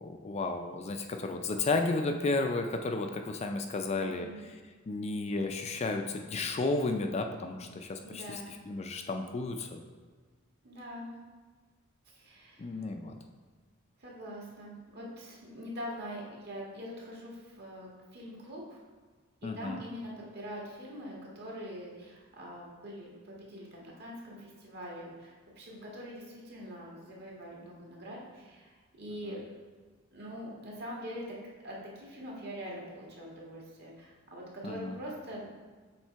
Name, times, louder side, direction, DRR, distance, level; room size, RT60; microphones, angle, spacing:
voice 1, 0.0-4.3 4.9-9.8 12.6-13.2 19.4-19.8 29.3-29.4 34.6-35.0, left 3 dB, 30° left, 5 dB, 0.4 m, -33 dB
voice 2, 4.0-4.4 8.0-8.5 10.6-11.1 12.1-12.7 14.0-18.8 19.5-29.4 30.1-31.4 31.6-35.5, equal, 50° right, -4 dB, 1.6 m, -43 dB
7.3 x 3.3 x 4.5 m, 1.4 s
head